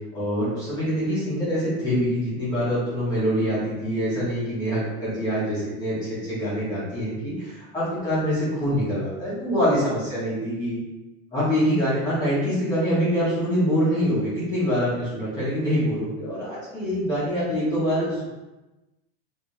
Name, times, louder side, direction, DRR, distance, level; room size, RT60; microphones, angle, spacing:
voice 1, 0.1-10.8 11.3-18.3, equal, 15° left, -11 dB, 1.1 m, -25 dB
3.2 x 2.7 x 3.2 m, 1.1 s
supercardioid pair, 175°, 30 cm